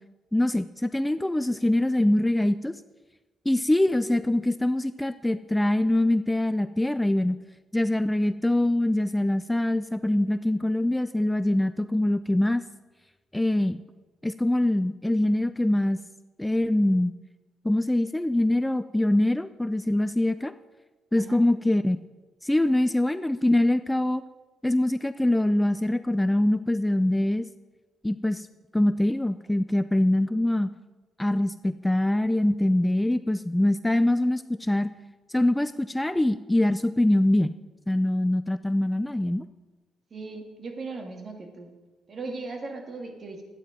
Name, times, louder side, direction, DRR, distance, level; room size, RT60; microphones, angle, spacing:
voice 1, 0.3-2.7 3.5-7.4 7.7-12.6 13.3-13.8 14.2-16.0 16.4-17.1 17.6-20.5 21.1-22.1 22.4-24.2 24.6-27.5 28.0-28.5 28.7-30.7 31.2-34.9 35.3-37.5 37.9-39.4, left 1 dB, 10° left, 12 dB, 0.4 m, -24 dB
voice 2, 40.1-41.7 42.1-43.4, right 3 dB, 45° right, 4 dB, 2.1 m, -38 dB
12.0 x 9.4 x 5.0 m, 1.2 s
cardioid pair, 90°, 0 cm